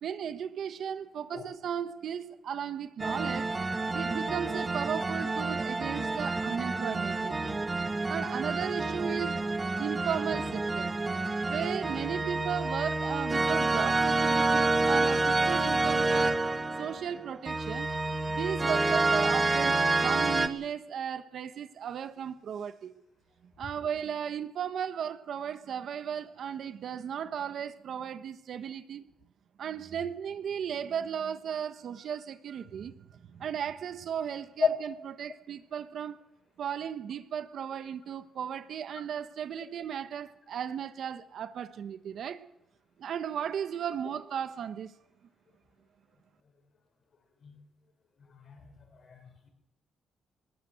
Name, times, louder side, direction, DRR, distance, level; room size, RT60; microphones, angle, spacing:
voice 1, 0.0-3.5 3.9-7.6 8.1-9.4 9.8-10.9 11.5-16.4 16.8-17.9 18.3-22.9 23.6-29.0 29.6-36.2 36.6-42.4 43.0-44.9, right 8 dB, 65° right, 1.3 m, -36 dB
sound 1, 3.0-20.5, right 3 dB, 25° right, 1.5 m, -28 dB
voice 2, 48.3-49.5, left 6 dB, 50° left, 6.1 m, -32 dB
20.0 x 18.0 x 8.0 m
cardioid pair, 90°, 0 cm